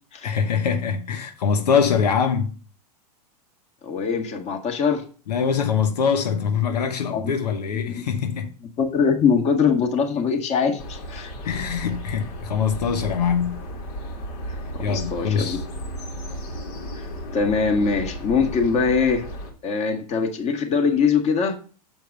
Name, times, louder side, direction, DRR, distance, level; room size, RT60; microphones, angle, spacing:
voice 1, 0.2-2.6 5.3-8.5 11.4-13.6 14.8-15.6, left 6 dB, 85° left, 1.0 m, -23 dB
voice 2, 3.8-5.0 7.1-7.3 7.9-8.0 8.8-11.3 14.8-15.6 17.0-17.1 17.3-19.3 19.6-21.6, left 5 dB, 35° left, 1.8 m, -22 dB
sound 1, 10.8-19.5, equal, 65° left, 3.3 m, -34 dB
7.2 x 4.5 x 6.5 m
hypercardioid pair, 115°, 20 cm